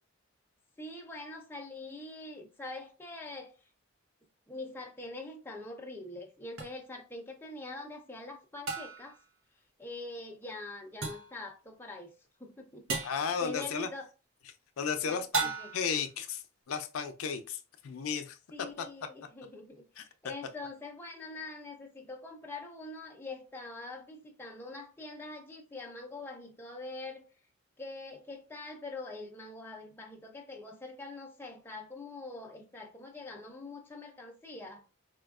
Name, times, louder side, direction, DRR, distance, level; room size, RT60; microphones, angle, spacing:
voice 1, 0.8-3.5 4.5-9.2 9.8-12.1 12.4-14.1 15.0-15.7 18.5-27.2 27.8-34.8, left 2 dB, 10° left, 0.5 m, -44 dB
sound 1, 6.6-6.7 8.7-9.2 11.0-11.4 12.9-13.3 15.3-16.0, right 4 dB, 70° right, 0.8 m, -34 dB
voice 2, 13.0-13.9 14.8-18.4 18.8-18.9 20.0-20.1, left 6 dB, 85° left, 0.5 m, -34 dB
4.3 x 2.3 x 2.3 m
head